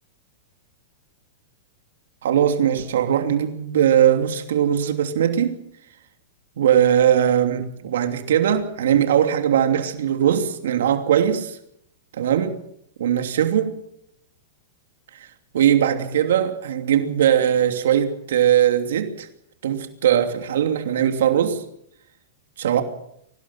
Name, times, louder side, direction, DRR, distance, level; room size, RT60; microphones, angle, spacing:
voice 1, 2.2-5.6 6.6-11.6 12.2-12.6 13.0-13.8 15.1-15.3 15.5-19.3 19.6-21.6 22.6-22.8, right 9 dB, 80° right, 2.9 m, -20 dB
24.0 x 18.5 x 7.3 m
supercardioid pair, 165°, 0 cm